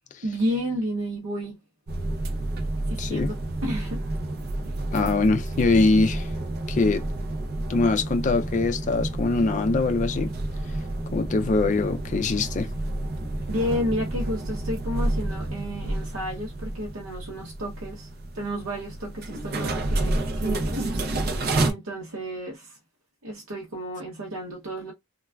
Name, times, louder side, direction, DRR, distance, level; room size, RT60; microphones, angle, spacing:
voice 1, 0.2-1.6 2.9-4.0 13.5-18.1 18.3-21.4 21.7-22.8 23.2-24.9, equal, 85° right, 0.8 m, -32 dB
sound 1, 1.9-21.7, right 2 dB, 50° right, 0.6 m, -30 dB
voice 2, 3.0-3.3 4.9-6.3 6.7-7.1 7.7-10.3 11.1-12.7, left 3 dB, 35° left, 0.4 m, -23 dB
3.3 x 2.2 x 2.3 m
head